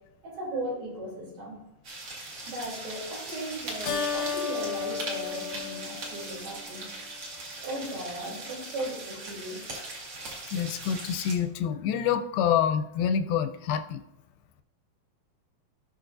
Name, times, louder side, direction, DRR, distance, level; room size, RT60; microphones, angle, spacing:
voice 1, 0.2-1.6 2.5-6.8 7.6-9.6, right 1 dB, 75° right, -3 dB, 5.0 m, -37 dB
sound 1, 1.8-11.4, right 2 dB, 40° right, 2.5 m, -40 dB
Keyboard (musical), 3.9-6.7, left 7 dB, 65° left, 1.7 m, -33 dB
voice 2, 10.5-14.0, left 8 dB, 85° left, 9 dB, 2.5 m, -27 dB
17.5 x 6.0 x 2.6 m, 0.91 s
omnidirectional pair, 4.2 m